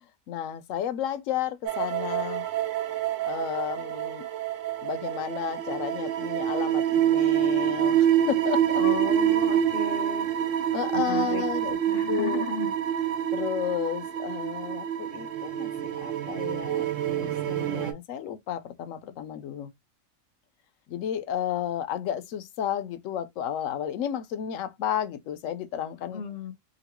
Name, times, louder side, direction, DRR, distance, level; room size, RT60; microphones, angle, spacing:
voice 1, 0.3-2.5 3.2-4.3 4.8-8.8 10.7-12.4 13.3-19.7 20.9-26.2, left 10 dB, 80° left, 0.9 m, -32 dB
sound 1, 1.7-17.9, right 10 dB, 80° right, 0.9 m, -27 dB
voice 2, 8.8-10.3 10.9-11.4 11.9-12.7 26.1-26.5, left 7 dB, 60° left, 0.7 m, -34 dB
2.9 x 2.6 x 2.9 m
omnidirectional pair, 1.3 m